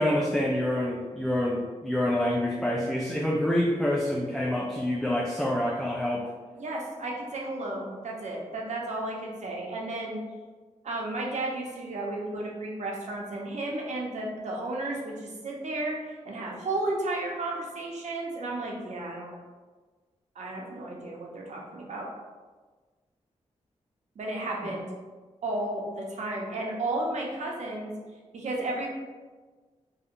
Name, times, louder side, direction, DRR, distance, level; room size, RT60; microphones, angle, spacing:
voice 1, 0.0-6.3, left 1 dB, ahead, -3 dB, 0.3 m, -27 dB
voice 2, 6.5-10.2 10.8-19.3 20.4-22.1 24.2-24.9 25.4-27.9 28.3-28.9, right 2 dB, 65° right, -2 dB, 0.6 m, -33 dB
2.7 x 2.0 x 2.5 m, 1.4 s
cardioid pair, 50°, 13 cm